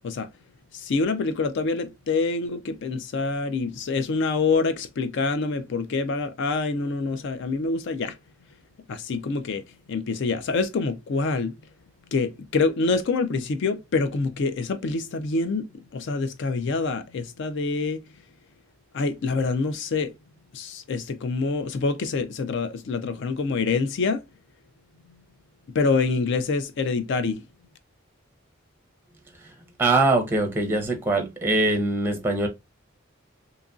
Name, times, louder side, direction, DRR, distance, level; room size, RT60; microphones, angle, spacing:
voice 1, 0.7-8.2 8.9-9.6 9.9-11.5 12.1-18.0 18.9-20.1 20.5-24.3 25.7-27.4, left 4 dB, 60° left, 0.4 m, -26 dB
voice 2, 29.8-32.5, right 2 dB, 10° right, 0.6 m, -22 dB
2.8 x 2.5 x 2.3 m
head